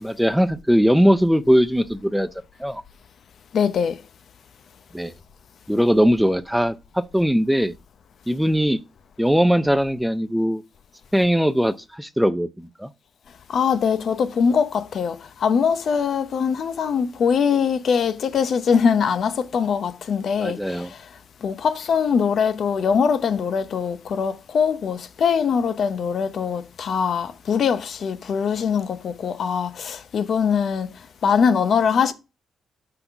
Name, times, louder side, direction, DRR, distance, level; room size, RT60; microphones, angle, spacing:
voice 1, 0.0-2.3 2.6-2.8 4.9-5.1 5.7-7.7 8.3-8.8 9.2-10.6 11.1-12.9 20.4-20.9, equal, ahead, 0.4 m, -20 dB
voice 2, 3.5-4.0 13.5-21.1 21.4-30.9 31.2-32.1, left 6 dB, 60° left, 0.7 m, -22 dB
5.9 x 3.9 x 5.8 m
cardioid pair, 100°, 0 cm